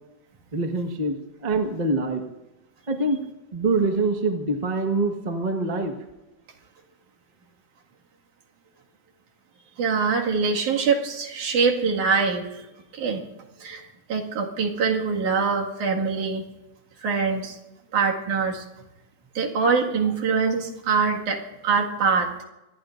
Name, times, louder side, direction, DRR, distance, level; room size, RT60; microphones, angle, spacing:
voice 1, 0.5-1.2 1.4-2.2 2.9-3.2 3.5-5.9, right 2 dB, 40° right, 3 dB, 0.6 m, -24 dB
voice 2, 9.8-12.7 12.9-13.2 13.6-16.4 17.0-17.6 17.9-18.7 19.4-22.3, right 5 dB, 80° right, 0 dB, 3.5 m, -24 dB
26.5 x 20.0 x 2.6 m, 0.99 s
omnidirectional pair, 3.4 m